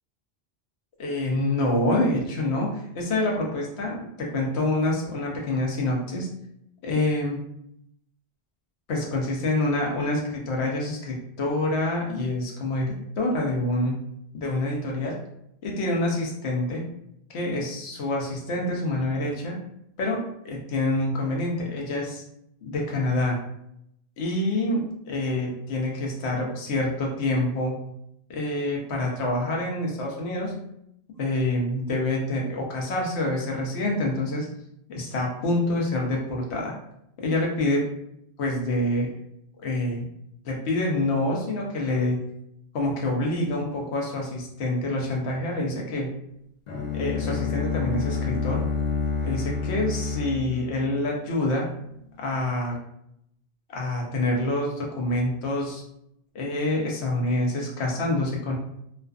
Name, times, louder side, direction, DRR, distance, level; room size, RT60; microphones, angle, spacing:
voice 1, 1.0-6.3 6.8-7.4 8.9-14.0 14.4-15.2 15.6-16.8 17.3-19.6 20.0-22.2 22.6-23.4 24.2-27.8 28.3-30.5 31.2-34.5 34.9-36.7 37.2-37.8 38.4-39.1 39.6-40.1 40.4-42.2 42.7-46.1 46.9-48.6 49.2-51.7 52.2-52.8 53.7-55.8 56.3-58.6, left 2 dB, 90° left, -1 dB, 0.9 m, -26 dB
Bowed string instrument, 46.7-51.6, left 5 dB, 50° left, 0.6 m, -29 dB
2.4 x 2.3 x 2.3 m, 0.76 s
omnidirectional pair, 1.1 m